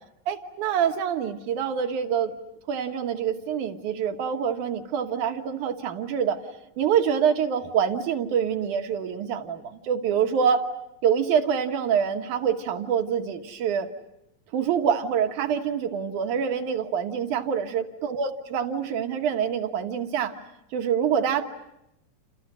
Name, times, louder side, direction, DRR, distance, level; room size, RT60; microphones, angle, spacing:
voice 1, 0.3-2.4 2.7-6.4 6.8-10.7 11.0-13.9 14.5-20.4 20.7-21.4, right 7 dB, 70° right, 6 dB, 2.8 m, -26 dB
29.0 x 28.5 x 6.3 m, 0.87 s
omnidirectional pair, 3.9 m